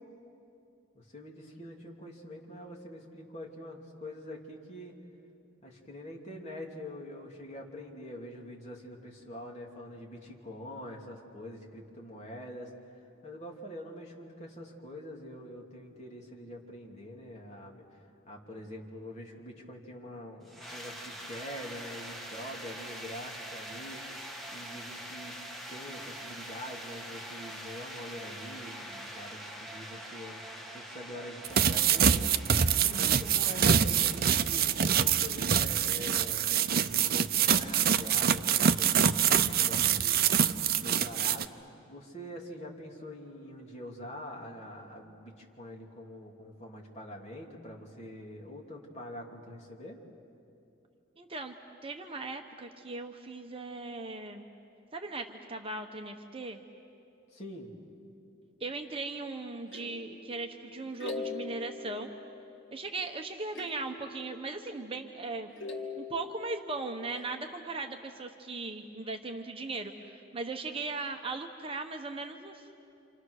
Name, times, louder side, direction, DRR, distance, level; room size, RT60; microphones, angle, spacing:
voice 1, 0.9-5.0 5.6-25.4 25.7-32.4 32.7-41.6 41.9-50.0 57.3-57.7, left 1 dB, 35° left, 0 dB, 2.9 m, -45 dB
sound 1, 20.4-37.1, equal, ahead, 2.6 m, -45 dB
sound 2, 31.4-41.4, right 8 dB, 50° right, 0.6 m, -25 dB
voice 2, 51.2-51.5 51.8-54.5 54.9-56.6 58.6-62.1 62.7-65.5 66.0-72.7, right 3 dB, 25° right, 4 dB, 1.0 m, -38 dB
sound 3, 59.7-63.0 63.5-65.2 65.6-67.9, left 3 dB, 65° left, 2.1 m, -43 dB
28.0 x 28.0 x 6.5 m, 2.7 s
head